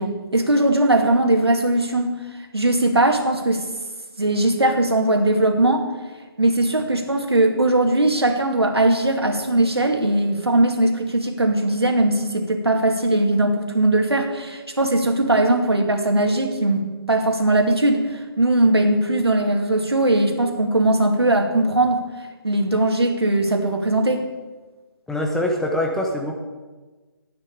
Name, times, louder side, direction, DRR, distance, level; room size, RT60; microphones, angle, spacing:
voice 1, 0.0-2.1 2.5-3.6 4.2-5.9 6.4-22.0 22.4-24.3, right 1 dB, 90° right, 4 dB, 2.4 m, -19 dB
voice 2, 25.1-26.4, left 1 dB, 5° left, 0 dB, 1.1 m, -23 dB
11.0 x 9.7 x 8.5 m, 1.3 s
figure-of-eight pair, 145°, 13 cm